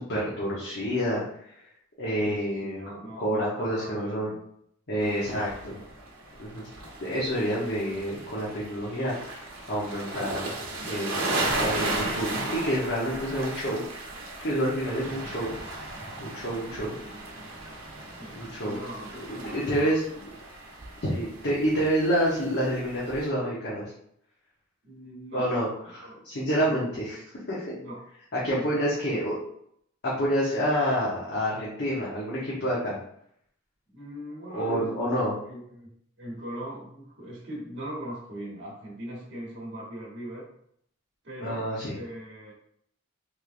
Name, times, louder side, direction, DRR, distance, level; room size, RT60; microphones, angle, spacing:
voice 1, 0.0-1.5 2.0-2.8 3.2-4.3 4.9-5.7 6.4-6.7 7.0-10.5 10.9-13.8 14.4-15.5 16.2-16.9 18.3-18.8 19.5-20.0 21.0-23.8 25.3-27.1 27.5-27.7 28.3-29.4 30.0-33.0 34.5-35.3 41.4-41.9, equal, 55° left, -7 dB, 0.9 m, -28 dB
voice 2, 2.2-4.4 5.0-5.8 15.2-15.3 18.1-19.9 24.8-25.5 26.0-26.2 26.6-26.8 27.8-28.0 28.5-29.2 33.9-35.9 36.2-40.5 41.2-42.5, right 1 dB, 60° right, -5 dB, 1.1 m, -40 dB
sound 1, 5.0-23.3, right 2 dB, 85° right, 0.9 m, -36 dB
3.4 x 3.2 x 2.5 m, 0.70 s
head